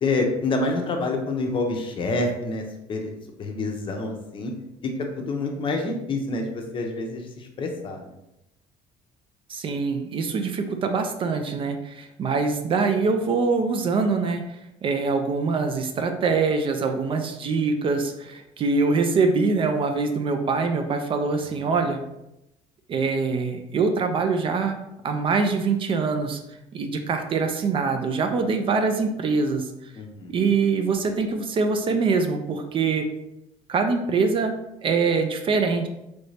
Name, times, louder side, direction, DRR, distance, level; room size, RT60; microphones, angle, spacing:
voice 1, 0.0-2.6 2.9-3.1 3.4-4.5 4.8-4.9 5.2-8.0 21.6-21.7 29.9-30.3, left 3 dB, 35° left, 3 dB, 0.6 m, -27 dB
voice 2, 9.5-14.4 14.8-22.0 22.9-26.4 26.7-29.7 30.3-33.1 33.7-35.9, right 4 dB, 40° right, 5 dB, 0.4 m, -24 dB
3.1 x 2.6 x 3.2 m, 0.88 s
cardioid pair, 125°, 14 cm